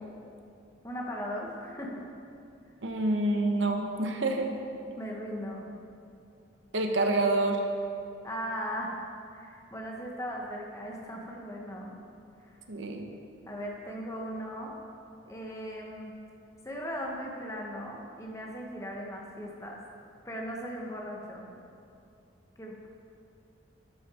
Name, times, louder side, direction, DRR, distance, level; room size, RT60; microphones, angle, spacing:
voice 1, 0.8-2.0 5.0-5.7 8.2-9.0 9.3-12.0 12.4-12.6 13.5-14.7 15.3-16.1 16.6-19.8 20.2-21.5 22.6-22.9, equal, 15° left, -1 dB, 1.1 m, -38 dB
voice 2, 2.8-4.5 6.7-7.6 12.7-13.1, right 2 dB, 80° right, 3 dB, 1.0 m, -27 dB
12.0 x 6.1 x 4.9 m, 2.5 s
head